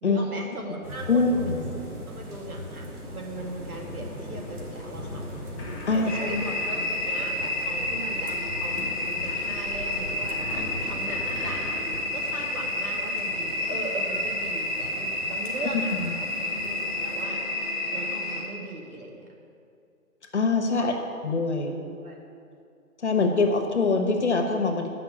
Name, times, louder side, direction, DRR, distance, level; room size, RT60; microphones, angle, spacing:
voice 1, 0.0-1.6 2.1-5.2 5.9-11.6 12.1-17.4 17.9-19.3 20.7-21.0 21.6-22.2, right 2 dB, 70° right, 0 dB, 2.2 m, -39 dB
sound 1, 0.8-17.2, left 1 dB, 90° right, 2.6 m, -41 dB
voice 2, 1.1-1.6 5.9-6.4 15.7-16.1 20.3-20.9 21.2-21.7 23.0-24.9, left 3 dB, 50° left, 4 dB, 1.1 m, -24 dB
sound 2, 3.3-12.0, left 2 dB, 20° left, 1.2 m, -40 dB
sound 3, 6.1-18.4, left 1 dB, 10° right, 1.5 m, -30 dB
8.4 x 5.8 x 7.9 m, 2.3 s
hypercardioid pair, 180°, 45 cm